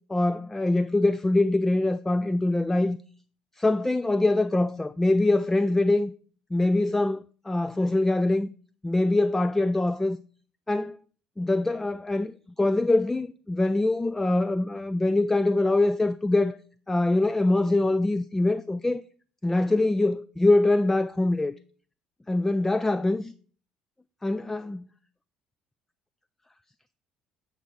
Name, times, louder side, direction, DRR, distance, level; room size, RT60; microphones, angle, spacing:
voice 1, 0.1-3.0 3.6-6.1 6.5-8.5 8.8-10.2 10.7-11.0 11.4-16.6 16.9-19.0 19.4-21.5 22.3-23.3 24.2-24.9, left 2 dB, 15° left, 0.4 m, -24 dB
8.9 x 5.1 x 4.5 m
hypercardioid pair, 60°, 3 cm